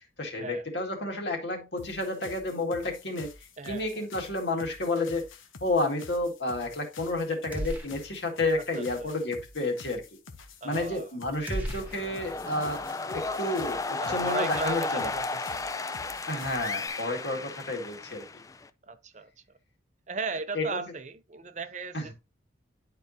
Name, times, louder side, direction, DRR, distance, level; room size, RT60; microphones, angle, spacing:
voice 1, 0.2-3.3 3.7-5.3 5.6-10.0 10.6-12.8 13.1-15.1 16.3-18.2 20.5-20.8 21.9-22.1, left 2 dB, 60° left, 2.1 m, -31 dB
sound 1, 1.8-16.9, left 4 dB, 90° left, 1.1 m, -49 dB
voice 2, 3.6-4.1 8.8-9.1 10.6-11.1 11.5-11.9 14.0-15.7 18.8-19.3 20.1-22.1, right 4 dB, 40° right, 0.6 m, -37 dB
sound 2, 7.5-8.4 8.7-8.8 11.5-12.8, equal, 10° right, 1.2 m, -36 dB
sound 3, 11.8-18.7, left 3 dB, 15° left, 0.3 m, -34 dB
10.5 x 4.6 x 2.8 m
head